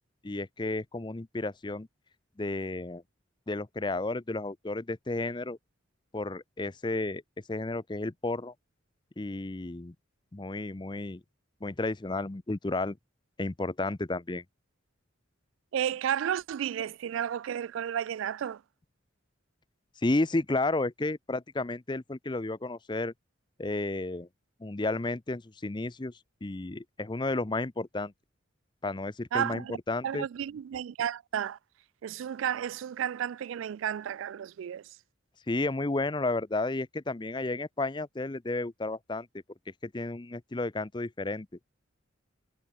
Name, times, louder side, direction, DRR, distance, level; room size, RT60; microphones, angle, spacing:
voice 1, 0.2-1.9 2.4-3.0 3.5-5.6 6.1-7.2 7.5-8.5 9.2-9.9 10.3-11.2 11.6-13.0 13.4-14.4 20.0-23.1 23.6-24.3 24.6-26.1 26.4-28.1 28.8-30.3 35.5-39.3 39.8-41.5, left 2 dB, 25° left, 0.6 m, -32 dB
voice 2, 15.7-18.6 29.3-29.8 30.0-31.6 32.0-34.8, right 9 dB, 80° right, 0.3 m, -32 dB
head